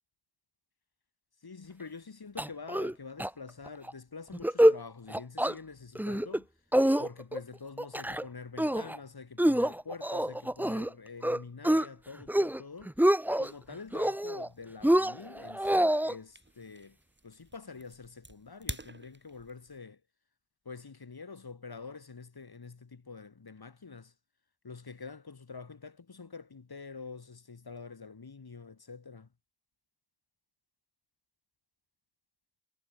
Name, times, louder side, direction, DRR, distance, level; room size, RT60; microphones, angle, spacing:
voice 1, 1.4-6.5 7.0-12.9 13.4-17.0 17.2-20.0 20.6-24.1 24.6-29.3, left 4 dB, 70° left, 6.3 m, -46 dB
sound 1, 2.4-2.9 3.2-3.3 3.7-3.9 4.3-4.8 5.1-5.5 6.0-6.4 6.7-7.4 7.8-8.2 8.6-9.0 9.4-10.9 11.2-11.9 12.2-12.6 12.9-13.5 13.9-14.5 14.8-16.1, right 1 dB, 5° right, 0.9 m, -26 dB
sound 2, 13.4-19.8, right 2 dB, 30° right, 3.7 m, -49 dB
wide cardioid pair, 55°, 38 cm